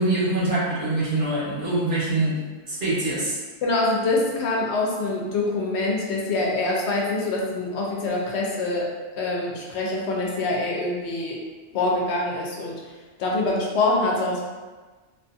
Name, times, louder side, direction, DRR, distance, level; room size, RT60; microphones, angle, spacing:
voice 1, 0.0-2.4 2.7-3.4, right 2 dB, 55° right, -9 dB, 1.1 m, -24 dB
voice 2, 3.6-8.9 9.2-11.4 11.7-12.7 13.2-14.4, left 2 dB, 75° left, -2 dB, 0.9 m, -25 dB
2.5 x 2.5 x 2.5 m, 1.3 s
omnidirectional pair, 1.1 m